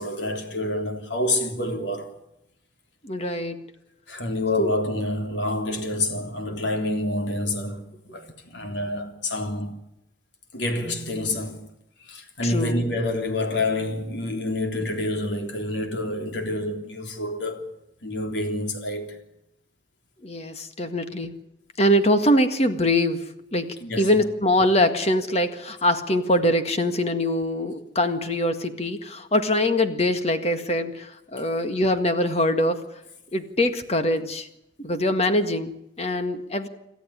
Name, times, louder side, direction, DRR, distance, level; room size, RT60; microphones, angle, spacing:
voice 1, 0.0-2.1 4.1-9.8 10.5-11.6 12.0-17.7 18.0-19.2 23.8-24.1, left 1 dB, 80° left, 3.5 m, -28 dB
voice 2, 3.0-3.6 4.6-4.7 12.4-12.9 20.2-21.3 21.8-32.8 33.3-34.5 34.8-36.7, left 1 dB, 35° left, 1.8 m, -23 dB
27.5 x 13.5 x 9.9 m
head